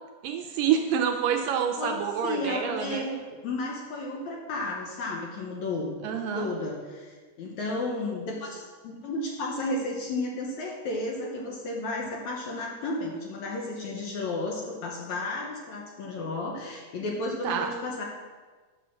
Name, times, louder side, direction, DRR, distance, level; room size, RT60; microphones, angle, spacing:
voice 1, 0.2-3.1 6.0-6.5 17.4-17.7, right 8 dB, 80° right, 4 dB, 2.1 m, -27 dB
voice 2, 1.8-5.9 6.3-18.1, left 2 dB, 65° left, -1 dB, 2.0 m, -33 dB
9.1 x 6.9 x 6.3 m, 1.4 s
omnidirectional pair, 4.3 m